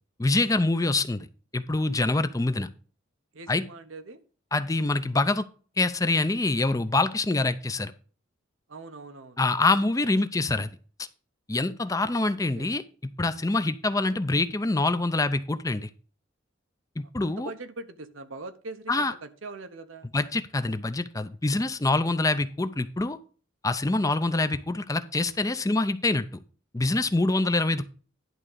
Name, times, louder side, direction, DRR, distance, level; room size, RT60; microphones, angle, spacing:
voice 1, 0.2-1.3 1.5-2.7 3.5-3.6 4.5-5.5 5.8-7.9 9.4-10.7 11.0-11.1 11.5-12.8 13.2-15.9 17.0-17.5 18.9-19.1 20.1-23.2 23.6-26.3 26.7-27.9, left 2 dB, 15° left, 11 dB, 0.5 m, -25 dB
voice 2, 3.3-4.2 8.7-9.4 12.6-12.7 17.2-20.1 27.3-27.4, right 3 dB, 90° right, 8 dB, 1.0 m, -42 dB
11.0 x 3.7 x 6.7 m, 0.39 s
head